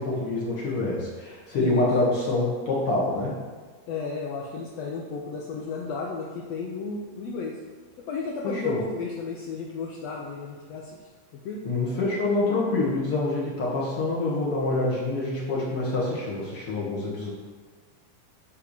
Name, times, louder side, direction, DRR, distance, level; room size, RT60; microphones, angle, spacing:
voice 1, 0.0-3.4 8.4-8.8 11.6-17.3, left 2 dB, 50° left, -5 dB, 2.2 m, -26 dB
voice 2, 3.9-7.6 8.1-10.9 11.4-11.6, left 4 dB, 85° left, -1 dB, 1.4 m, -33 dB
10.0 x 3.7 x 6.6 m, 1.4 s
omnidirectional pair, 3.9 m